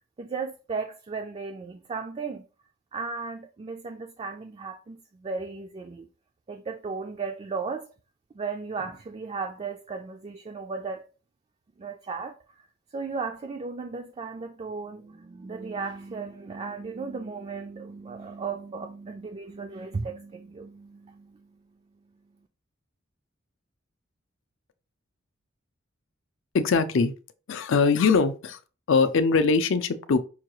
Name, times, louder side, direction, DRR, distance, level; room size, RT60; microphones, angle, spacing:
voice 1, 0.2-2.4 2.9-6.1 6.5-7.9 8.3-11.1 11.8-12.7 12.9-21.6, right 4 dB, 30° right, 0.3 m, -35 dB
voice 2, 26.5-27.1 27.5-28.6 28.9-30.2, left 4 dB, 65° left, 0.4 m, -22 dB
5.5 x 2.3 x 3.0 m
head